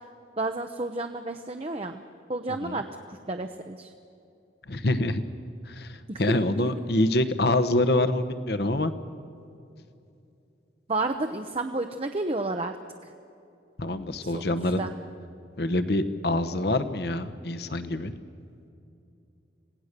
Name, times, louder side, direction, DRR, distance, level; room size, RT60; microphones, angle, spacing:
voice 1, 0.4-2.0 2.3-3.9 6.1-6.2 10.9-12.8 13.0-13.1 14.2-14.4 14.8-14.9, right 2 dB, 30° right, 5 dB, 0.7 m, -31 dB
voice 2, 4.7-5.2 5.7-8.9 13.8-14.8 15.6-18.1, left 1 dB, 55° left, 10 dB, 1.1 m, -26 dB
26.5 x 17.5 x 6.7 m, 2.6 s
head